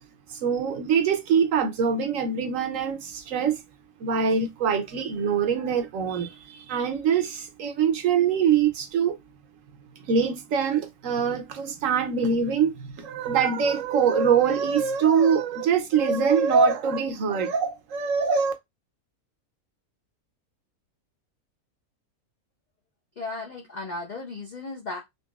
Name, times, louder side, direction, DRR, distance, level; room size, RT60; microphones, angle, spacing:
voice 1, 0.3-3.6 4.0-9.2 10.1-18.5, right 6 dB, 70° right, 0.9 m, -23 dB
voice 2, 23.2-25.0, left 3 dB, 65° left, 0.4 m, -35 dB
3.9 x 2.7 x 2.3 m
omnidirectional pair, 1.6 m